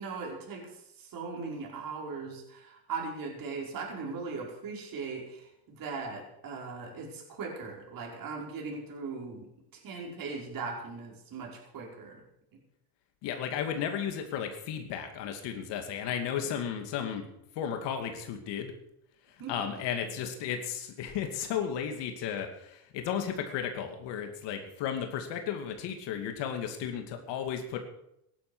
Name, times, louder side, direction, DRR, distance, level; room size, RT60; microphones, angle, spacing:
voice 1, 0.0-12.2 19.4-19.7, right 4 dB, 45° right, -1 dB, 5.5 m, -39 dB
voice 2, 13.2-17.3 17.5-18.7 19.5-27.8, left 8 dB, 65° left, 5 dB, 2.7 m, -34 dB
16.5 x 11.5 x 6.3 m, 0.78 s
cardioid pair, 120°, 46 cm